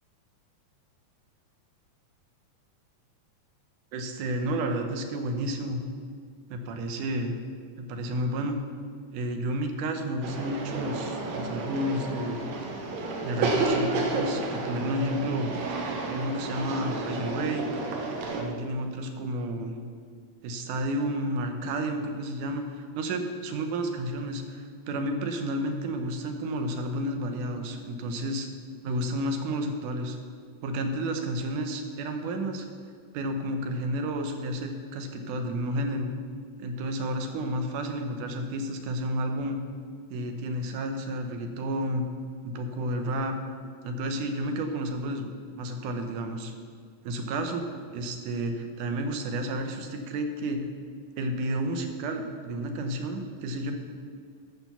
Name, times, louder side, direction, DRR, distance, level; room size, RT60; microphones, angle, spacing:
voice 1, 3.9-5.8 6.5-7.4 7.8-8.6 9.1-12.5 13.2-15.5 16.1-17.7 18.3-19.8 20.4-28.5 28.8-30.2 30.6-32.7 33.1-36.1 36.6-39.6 40.1-42.1 42.4-43.4 43.8-46.5 47.0-47.7 47.9-50.7 51.2-53.7, right 1 dB, 85° right, 5 dB, 2.4 m, -31 dB
sound 1, 10.2-18.4, right 3 dB, 70° right, 2.2 m, -31 dB
12.0 x 4.5 x 7.0 m, 2.1 s
omnidirectional pair, 3.5 m